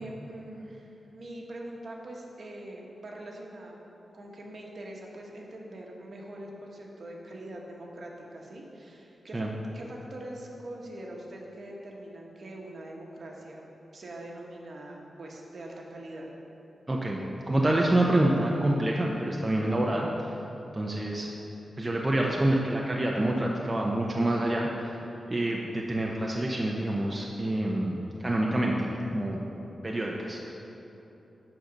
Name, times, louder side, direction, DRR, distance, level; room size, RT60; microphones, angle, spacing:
voice 1, 0.0-3.8 4.1-13.6 13.9-16.3, right 1 dB, 55° right, -1 dB, 1.3 m, -43 dB
voice 2, 16.9-17.2 17.5-20.3 20.7-21.3 21.8-25.0 25.3-28.9 29.1-29.4 29.8-30.5, right 1 dB, 20° right, -2 dB, 0.7 m, -27 dB
8.7 x 6.5 x 5.2 m, 3.0 s
wide cardioid pair, 130°, 0 cm